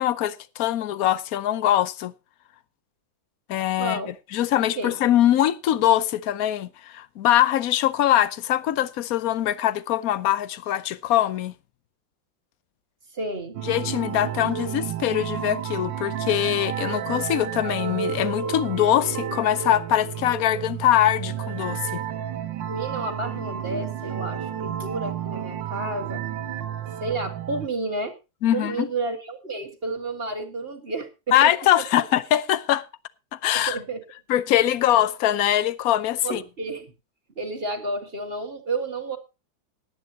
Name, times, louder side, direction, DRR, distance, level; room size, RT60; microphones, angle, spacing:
voice 1, 0.0-2.1 3.5-4.0 4.3-11.5 13.6-22.0 28.4-28.9 31.3-32.8 33.3-33.8 34.3-36.4, left 12 dB, 60° left, 1.0 m, -22 dB
voice 2, 3.8-4.1 4.8-5.0 13.1-13.6 22.7-26.2 27.0-28.1 28.5-31.8 33.5-34.0 36.2-36.9 37.4-39.2, right 2 dB, 30° right, 1.8 m, -31 dB
sound 1, 13.5-27.7, right 9 dB, 70° right, 1.7 m, -31 dB
18.5 x 9.9 x 2.9 m
omnidirectional pair, 2.1 m